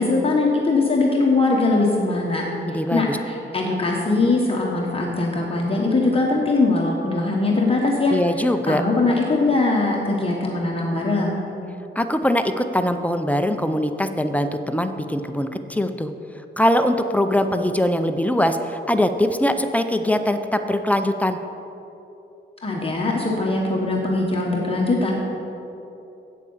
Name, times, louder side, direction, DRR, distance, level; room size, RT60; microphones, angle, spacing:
voice 1, 0.0-2.4 2.7-8.2 8.7-11.4 22.6-25.1, left 3 dB, 25° left, -2 dB, 1.1 m, -21 dB
voice 2, 2.7-3.2 8.1-8.8 12.0-16.1 16.6-21.4, left 1 dB, 5° left, 7 dB, 0.4 m, -22 dB
8.5 x 8.3 x 7.0 m, 2.9 s
wide cardioid pair, 170°, 21 cm